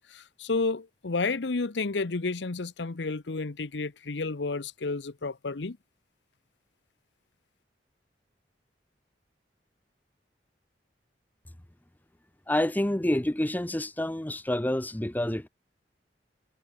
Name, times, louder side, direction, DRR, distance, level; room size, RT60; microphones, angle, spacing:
voice 1, 0.0-5.8, left 3 dB, 80° left, 0.9 m, -31 dB
voice 2, 12.5-15.5, left 1 dB, 10° left, 0.7 m, -28 dB
head